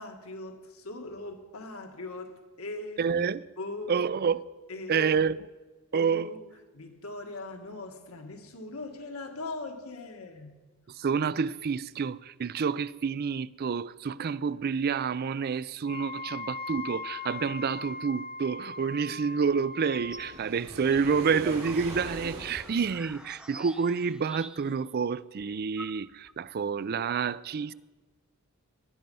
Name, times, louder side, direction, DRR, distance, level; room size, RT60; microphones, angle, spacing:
voice 1, 0.0-3.1 3.6-4.1 4.7-5.1 5.9-6.4 6.7-10.6, left 2 dB, 75° left, 1.8 m, -40 dB
voice 2, 3.0-3.4 3.9-4.4 4.9-5.4 5.9-6.3 11.0-27.7, right 6 dB, 45° right, 0.4 m, -28 dB
Wind instrument woodwind instrument, 15.8-20.4, left 3 dB, 25° left, 0.9 m, -39 dB
sound 1, 19.7-20.3 20.7-24.9 25.1-25.2 25.4-26.4, right 1 dB, 5° right, 0.8 m, -46 dB
Waves surf, 19.9-23.4, right 2 dB, 75° right, 5.1 m, -42 dB
19.5 x 10.5 x 5.5 m
head